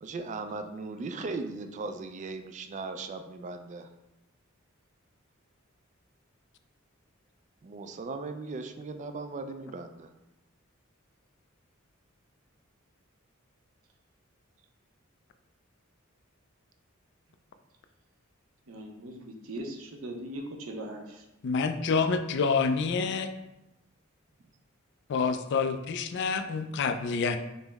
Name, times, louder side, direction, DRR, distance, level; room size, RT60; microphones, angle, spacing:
voice 1, 0.0-3.9 7.6-10.1, right 3 dB, 35° right, 7 dB, 0.3 m, -38 dB
voice 2, 18.7-21.3, right 1 dB, 75° right, 3 dB, 0.6 m, -40 dB
voice 3, 21.4-23.3 25.1-27.4, left 5 dB, 55° left, 9 dB, 0.3 m, -27 dB
5.3 x 2.0 x 3.4 m, 0.94 s
head